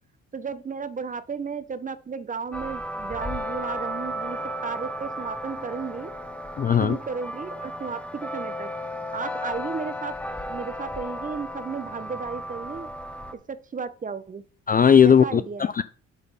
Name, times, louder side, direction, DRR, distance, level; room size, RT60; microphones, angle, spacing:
voice 1, 0.3-6.1 6.8-8.7 9.1-10.2 10.5-12.9 13.5-14.4 15.0-15.7, right 5 dB, 25° right, 14 dB, 0.7 m, -34 dB
sound 1, 2.5-13.3, equal, 5° left, 1.2 m, -34 dB
voice 2, 6.6-7.0 14.7-15.8, left 7 dB, 30° left, 14 dB, 0.4 m, -17 dB
8.1 x 4.2 x 5.4 m, 0.40 s
cardioid pair, 90°, 30 cm